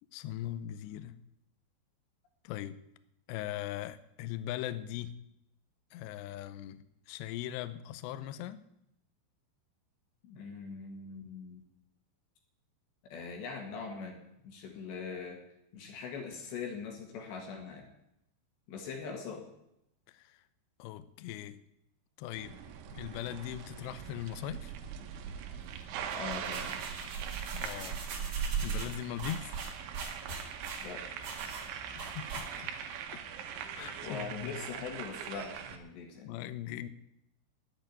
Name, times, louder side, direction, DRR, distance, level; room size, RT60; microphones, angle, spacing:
voice 1, 0.1-1.2 2.4-2.8 3.3-5.2 5.9-8.6 20.1-20.4 20.8-21.6 22.2-22.6 22.9-24.7 27.4-28.0 28.6-29.6 31.9-32.7 33.8-34.6 36.2-36.9, left 12 dB, 90° left, 13 dB, 2.5 m, -40 dB
voice 2, 10.2-11.6 13.1-15.4 15.7-17.9 18.7-19.4 26.1-26.8 30.8-31.1 34.0-36.3, left 5 dB, 65° left, 2 dB, 3.8 m, -42 dB
sound 1, 22.3-35.8, right 8 dB, 75° right, 3.2 m, -42 dB
sound 2, 25.9-32.9, right 6 dB, 50° right, 2.2 m, -39 dB
10.5 x 8.6 x 9.5 m, 0.81 s
omnidirectional pair, 5.8 m